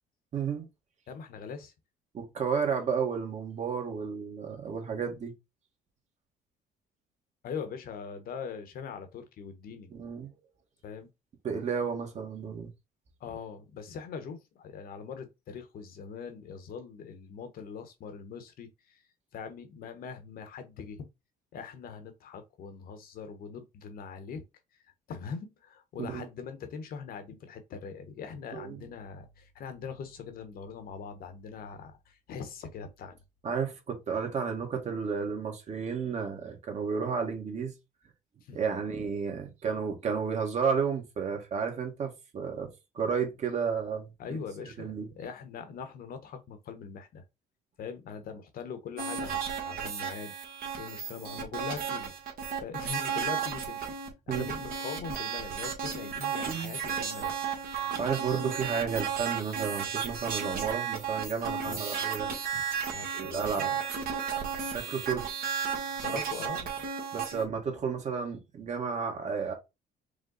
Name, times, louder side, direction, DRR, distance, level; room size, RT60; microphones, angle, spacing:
voice 1, 0.3-0.7 2.1-5.3 9.9-10.3 11.4-12.7 26.0-26.3 28.5-28.9 33.4-37.7 38.5-42.7 42.9-44.1 44.6-45.1 54.3-54.5 56.4-56.7 57.8-62.6 63.1-63.7 64.6-65.2 67.1-69.5, right 6 dB, 45° right, 1.5 m, -32 dB
voice 2, 1.1-1.7 7.4-9.9 10.8-11.1 13.2-19.0 19.3-21.1 21.5-24.4 25.1-33.2 38.4-38.6 44.2-47.2 47.8-50.3 50.8-52.1 52.6-53.9 54.3-57.3 61.6-62.1 62.9-63.8 66.0-66.9 67.4-67.5, left 6 dB, 60° left, 1.0 m, -42 dB
sound 1, 49.0-67.4, right 7 dB, 60° right, 1.4 m, -34 dB
5.1 x 2.2 x 3.9 m
cardioid pair, 110°, 17 cm